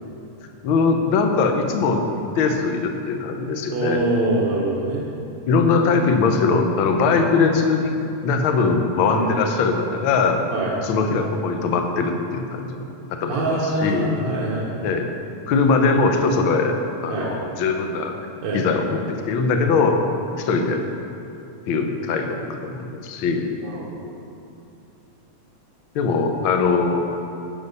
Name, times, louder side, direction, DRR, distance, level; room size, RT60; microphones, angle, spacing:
voice 1, 0.6-4.0 5.5-8.0 8.2-10.4 10.8-12.8 13.2-14.1 14.8-15.1 15.5-18.1 18.5-19.0 19.3-20.0 20.4-20.8 21.7-23.5 25.9-27.1, left 4 dB, 70° left, 4 dB, 1.2 m, -21 dB
voice 2, 3.7-5.1 7.0-7.2 8.5-8.7 9.1-9.3 10.5-10.7 13.3-14.7 17.1-17.3 18.4-18.6 23.6-24.0, right 2 dB, 70° right, -5 dB, 2.3 m, -24 dB
15.0 x 6.1 x 5.4 m, 2.7 s
omnidirectional pair, 3.4 m